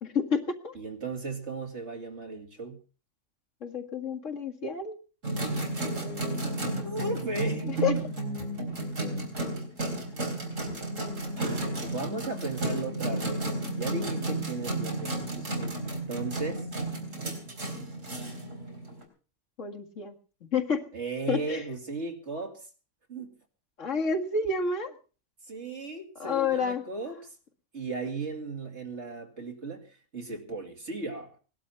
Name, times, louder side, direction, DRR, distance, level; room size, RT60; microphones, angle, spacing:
voice 1, 0.0-0.7 3.6-5.0 7.6-7.9 19.6-20.9 21.3-21.7 23.8-24.9 26.2-26.8, left 5 dB, 75° left, 3 dB, 2.3 m, -29 dB
voice 2, 0.7-2.8 6.8-8.0 11.4-16.7 20.9-22.7 23.1-23.3 25.4-27.3 27.7-31.4, right 3 dB, 60° right, 4 dB, 2.9 m, -36 dB
sound 1, 5.2-19.0, right 1 dB, 85° right, 4.3 m, -32 dB
19.0 x 12.0 x 5.8 m, 0.38 s
omnidirectional pair, 1.3 m